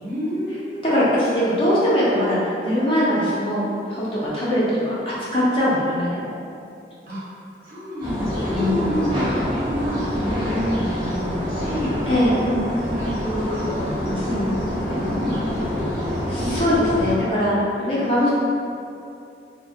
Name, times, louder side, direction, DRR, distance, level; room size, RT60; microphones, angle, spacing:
voice 1, 0.0-0.8 7.1-7.2 7.6-12.1 12.4-16.6, equal, 50° right, -10 dB, 1.1 m, -28 dB
voice 2, 0.8-4.9 5.3-6.4 8.5-8.9 12.1-12.3 16.3-18.3, left 1 dB, 30° left, -9 dB, 0.6 m, -21 dB
sound 1, 8.0-17.1, equal, 25° right, 0.8 m, -27 dB
3.5 x 2.1 x 2.7 m, 2.6 s
head